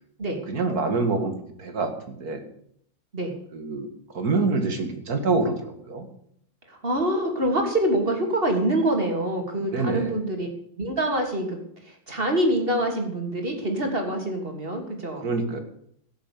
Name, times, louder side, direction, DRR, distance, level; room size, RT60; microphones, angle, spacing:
voice 1, 0.5-2.4 3.5-3.9 4.1-6.1 9.7-10.2 15.2-15.6, right 3 dB, 90° right, 6 dB, 2.5 m, -26 dB
voice 2, 6.7-10.5 10.8-15.3, right 1 dB, 40° right, 3 dB, 2.9 m, -25 dB
15.5 x 7.3 x 8.4 m, 0.69 s
omnidirectional pair, 1.6 m